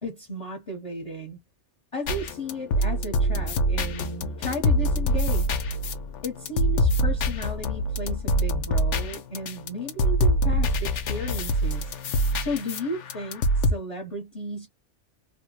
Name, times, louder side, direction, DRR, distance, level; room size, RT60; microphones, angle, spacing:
voice 1, 0.0-1.4 1.9-5.6 6.2-12.0 12.4-14.7, left 1 dB, 30° left, 1.0 m, -34 dB
sound 1, 2.1-13.7, equal, 80° left, 1.0 m, -25 dB
2.9 x 2.1 x 2.9 m
omnidirectional pair, 1.2 m